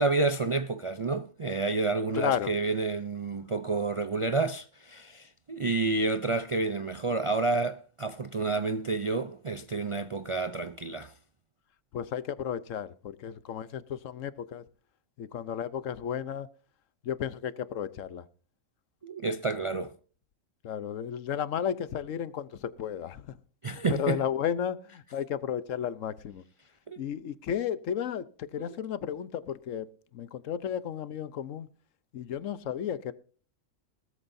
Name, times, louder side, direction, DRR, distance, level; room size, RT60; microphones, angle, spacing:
voice 1, 0.0-11.1 19.0-19.9 23.6-24.2 26.9-27.0, right 3 dB, 45° right, 0.4 m, -29 dB
voice 2, 2.1-2.5 11.9-14.6 15.2-16.5 17.0-18.2 20.6-23.3 23.7-26.4 27.0-31.7 32.1-33.1, left 9 dB, 75° left, 1.1 m, -33 dB
19.0 x 13.5 x 2.7 m
omnidirectional pair, 1.3 m